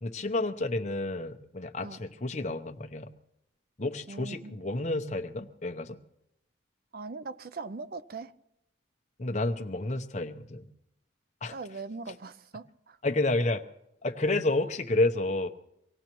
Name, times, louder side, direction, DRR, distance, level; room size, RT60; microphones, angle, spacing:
voice 1, 0.0-3.1 3.8-6.0 9.2-10.7 11.4-11.6 13.0-13.6 14.0-15.5, left 2 dB, 35° left, 0.8 m, -30 dB
voice 2, 4.1-4.7 6.9-8.3 11.5-13.0, right 3 dB, 50° right, 0.5 m, -41 dB
25.0 x 17.5 x 3.0 m
head